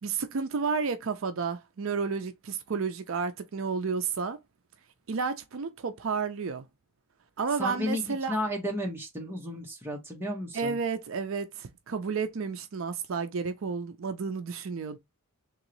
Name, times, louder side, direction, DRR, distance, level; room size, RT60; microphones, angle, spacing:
voice 1, 0.0-4.4 5.1-6.7 7.4-8.3 10.5-15.0, right 5 dB, 65° right, 0.5 m, -31 dB
voice 2, 7.6-10.8, equal, 10° right, 1.1 m, -33 dB
3.7 x 3.0 x 3.0 m
head